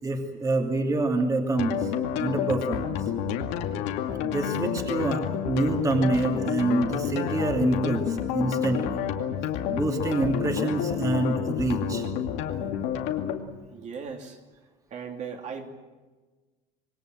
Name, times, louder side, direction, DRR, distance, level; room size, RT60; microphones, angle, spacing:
voice 1, 0.0-1.9 2.2-2.9 4.2-9.0 9.7-12.0, right 2 dB, 20° right, 3 dB, 2.7 m, -26 dB
sound 1, 1.6-13.3, left 9 dB, 85° left, 2.4 m, -29 dB
voice 2, 13.7-14.4 14.9-15.7, right 6 dB, 45° right, 2 dB, 2.9 m, -37 dB
26.5 x 21.0 x 7.8 m, 1.3 s
cardioid pair, 145°, 18 cm